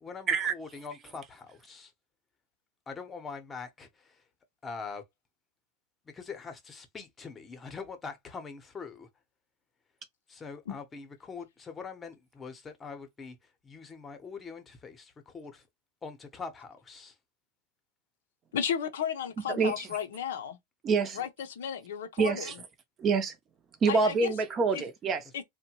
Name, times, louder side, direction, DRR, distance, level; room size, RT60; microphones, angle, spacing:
voice 1, 0.0-1.9 2.9-4.2 4.6-5.0 6.1-9.1 10.3-13.4 13.6-15.6 16.0-17.1, left 5 dB, 20° left, 0.7 m, -43 dB
voice 2, 18.5-20.6 21.1-22.5 23.9-24.3 24.7-24.8 25.3-25.4, left 8 dB, 85° left, 0.5 m, -34 dB
voice 3, 19.5-19.9 20.8-21.2 22.2-22.5 23.0-23.3 23.8-25.2, right 4 dB, 30° right, 0.6 m, -26 dB
2.7 x 2.1 x 2.9 m
hypercardioid pair, 115°, 0 cm